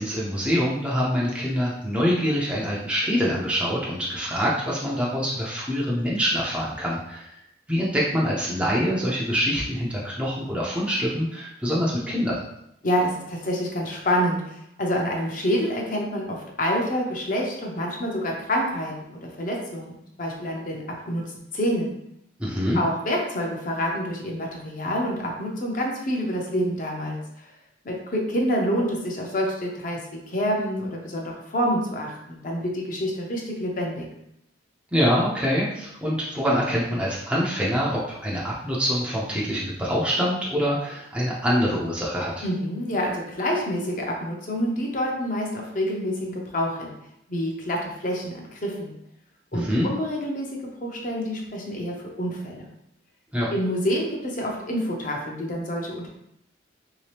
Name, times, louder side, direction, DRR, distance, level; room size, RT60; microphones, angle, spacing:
voice 1, 0.0-7.4 7.7-12.4 22.4-22.8 34.9-42.4 49.5-49.9 53.3-53.5, equal, 5° right, -6 dB, 0.5 m, -25 dB
voice 2, 12.8-21.2 21.5-21.9 22.7-27.5 27.8-34.0 42.4-46.9 47.3-48.9 49.5-50.5 50.8-52.7 53.5-56.1, equal, 40° left, -1 dB, 0.7 m, -27 dB
3.3 x 2.8 x 3.3 m, 0.79 s
head